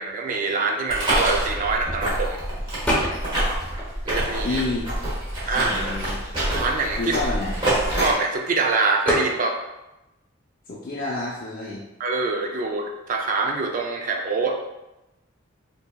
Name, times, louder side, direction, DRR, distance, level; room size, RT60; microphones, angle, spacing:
voice 1, 0.0-2.4 4.0-4.6 5.5-5.7 6.5-7.2 8.0-9.6 12.0-14.6, right 3 dB, 40° right, 1 dB, 0.4 m, -24 dB
sound 1, 0.9-8.1, right 1 dB, 25° right, 1.2 m, -26 dB
sound 2, 2.9-3.4 3.8-5.0 5.7-5.8 6.0-8.2 9.1-9.4, left 1 dB, 10° left, 0.7 m, -28 dB
voice 2, 4.4-4.9 5.5-6.2 7.0-7.5 10.7-11.8, left 3 dB, 45° left, -4 dB, 0.5 m, -29 dB
4.9 x 2.8 x 2.2 m, 0.96 s
head